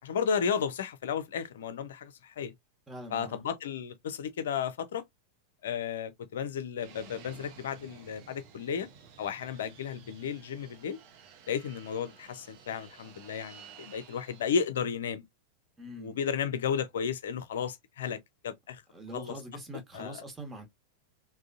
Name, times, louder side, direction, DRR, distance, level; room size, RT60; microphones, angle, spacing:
voice 1, 0.0-2.5 3.1-5.0 5.6-8.9 9.2-11.0 11.5-15.2 16.0-18.2 18.4-18.8 19.1-19.3 19.9-20.2, left 7 dB, 60° left, 0.5 m, -33 dB
voice 2, 2.9-3.4 15.8-16.2 18.9-20.7, equal, 10° right, 1.2 m, -43 dB
Fixed-wing aircraft airplane, 6.8-14.6, right 7 dB, 45° right, 0.7 m, -54 dB
3.5 x 2.2 x 2.5 m
figure-of-eight pair, 90°, 0 cm